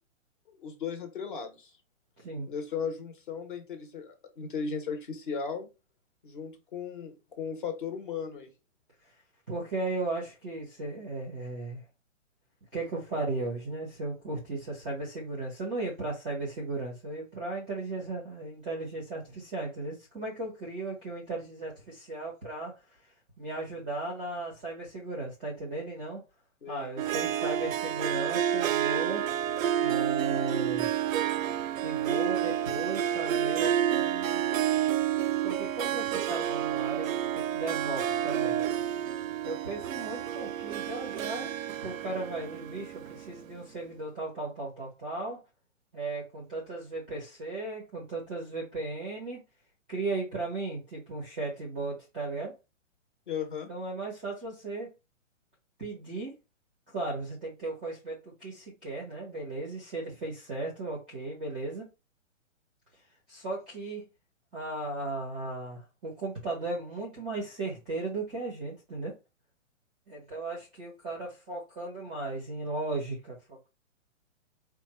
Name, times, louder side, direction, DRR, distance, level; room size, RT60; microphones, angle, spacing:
voice 1, 0.5-1.7 2.5-5.7 6.2-8.5 26.6-26.9 53.3-53.7, left 6 dB, 40° left, 1.0 m, -36 dB
voice 2, 2.2-2.5 9.5-11.8 12.7-22.7 23.4-26.2 26.7-29.2 29.8-30.9 31.8-34.4 35.4-38.6 39.4-41.5 41.8-45.4 45.9-49.4 49.9-52.5 53.7-54.9 55.8-56.3 56.9-61.9 63.3-64.0 64.5-69.1 70.1-73.7, right 2 dB, 5° right, 0.5 m, -36 dB
Harp, 27.0-43.5, right 11 dB, 90° right, 0.5 m, -29 dB
4.4 x 2.3 x 4.3 m
hypercardioid pair, 175°, 39 cm